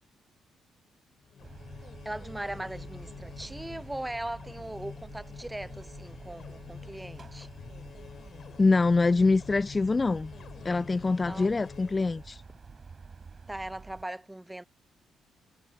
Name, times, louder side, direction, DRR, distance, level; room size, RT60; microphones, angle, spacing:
sound 1, 1.2-12.3, left 7 dB, 50° left, 4.3 m, -47 dB
sound 2, 1.4-14.0, right 5 dB, 40° right, 4.6 m, -49 dB
voice 1, 2.0-7.5 11.3-11.5 13.5-14.6, right 1 dB, 10° right, 1.0 m, -39 dB
voice 2, 8.6-10.3 10.6-12.4, left 3 dB, 30° left, 0.5 m, -24 dB
figure-of-eight pair, 40°, 0 cm